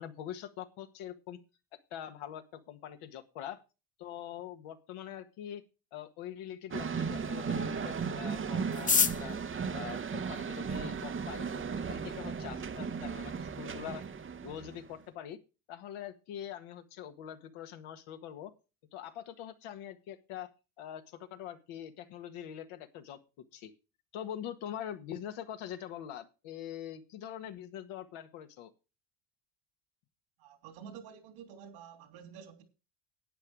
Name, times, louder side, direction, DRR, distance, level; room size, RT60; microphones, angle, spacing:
voice 1, 0.0-1.4 1.9-3.6 4.0-5.6 5.9-9.4 9.7-14.1 14.4-15.4 15.7-18.5 18.9-20.5 20.8-23.2 23.5-23.7 24.1-28.7, left 10 dB, 70° left, 1.7 m, -43 dB
sound 1, 6.7-15.0, right 6 dB, 25° right, 0.8 m, -36 dB
sound 2, 8.7-11.0 11.8-11.9 12.1-12.2 12.4-12.9 13.2-13.3 13.5-13.9 14.3-14.5 14.8-15.1, left 5 dB, 15° left, 0.5 m, -31 dB
voice 2, 30.4-32.6, right 7 dB, 75° right, 3.3 m, -49 dB
11.5 x 8.9 x 4.8 m
supercardioid pair, 85°, 50 cm